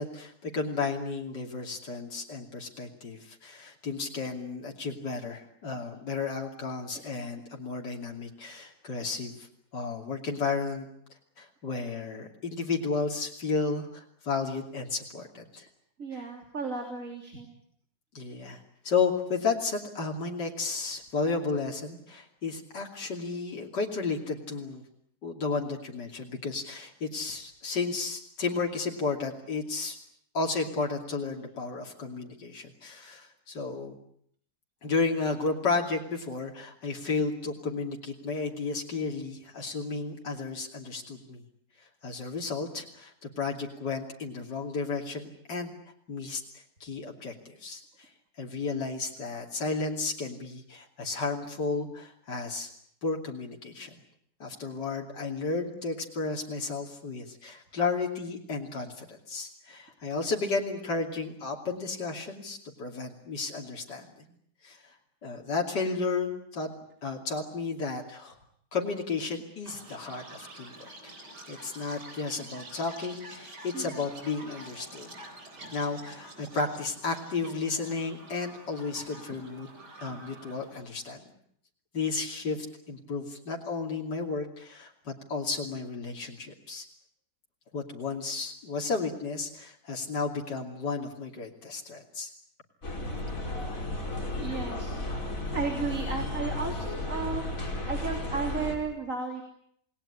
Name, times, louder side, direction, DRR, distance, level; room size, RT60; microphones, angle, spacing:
voice 1, 0.0-9.5 9.7-10.9 11.4-15.7 16.1-16.2 18.2-24.8 25.2-30.0 30.3-34.0 34.8-41.4 42.0-45.7 46.1-48.1 48.4-52.7 53.0-54.0 54.4-64.3 64.6-64.9 65.2-66.7 67.0-68.4 68.7-70.9 71.5-75.1 75.7-79.7 80.0-81.2 81.9-86.9 87.7-92.3, left 4 dB, 80° left, 0 dB, 3.5 m, -33 dB
voice 2, 16.0-17.5 73.7-73.9 75.6-75.8 94.4-94.9 95.5-97.5 97.9-99.4, right 4 dB, 50° right, 3 dB, 3.7 m, -34 dB
Chirp tweet, 69.7-80.8, right 1 dB, 75° right, 4.7 m, -47 dB
sound 1, 92.8-98.7, left 2 dB, 50° left, 6.0 m, -34 dB
28.0 x 20.0 x 9.9 m, 0.68 s
omnidirectional pair, 1.8 m